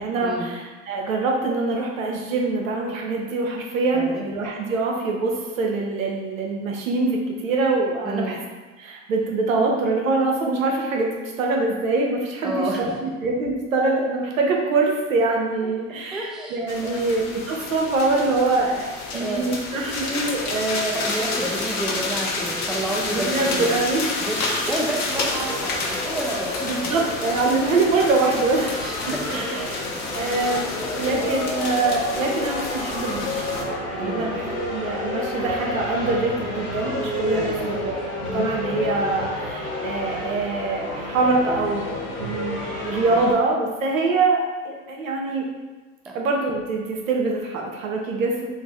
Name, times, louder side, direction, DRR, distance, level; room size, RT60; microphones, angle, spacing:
voice 1, 0.0-8.4 8.8-11.1 11.4-21.0 23.1-24.1 24.4-24.7 26.7-29.8 30.1-30.7 31.0-33.4 33.9-38.0 38.3-41.9 42.2-45.4 46.1-48.5, right 3 dB, 90° right, 0 dB, 0.7 m, -24 dB
voice 2, 3.9-4.3 8.0-8.4 12.4-12.8 16.1-17.1 19.1-19.5 20.9-23.7 24.2-24.4 24.7-26.7 28.8-29.0 29.3-29.4 30.3-30.7 34.0-34.3 37.3-37.6 43.1-43.2 46.1-46.2, right 1 dB, ahead, -2 dB, 0.4 m, -30 dB
sound 1, 16.7-33.6, left 3 dB, 45° left, 0.7 m, -30 dB
sound 2, 25.1-43.3, left 1 dB, 80° left, 1.1 m, -30 dB
2.6 x 2.5 x 3.4 m, 1.3 s
hypercardioid pair, 75°, 39 cm